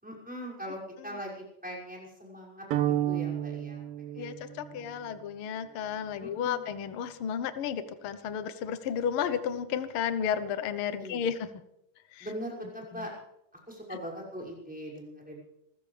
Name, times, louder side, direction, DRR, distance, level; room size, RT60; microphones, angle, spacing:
voice 1, 0.0-5.2 6.2-6.7 11.0-11.3 12.2-13.1 13.7-15.4, equal, ahead, -3 dB, 5.8 m, -41 dB
sound 1, 2.7-5.0, right 12 dB, 70° right, 1.3 m, -31 dB
voice 2, 4.2-11.4 12.1-12.2 12.9-13.1, left 8 dB, 90° left, 11 dB, 1.2 m, -32 dB
28.0 x 15.0 x 3.4 m, 0.81 s
omnidirectional pair, 3.8 m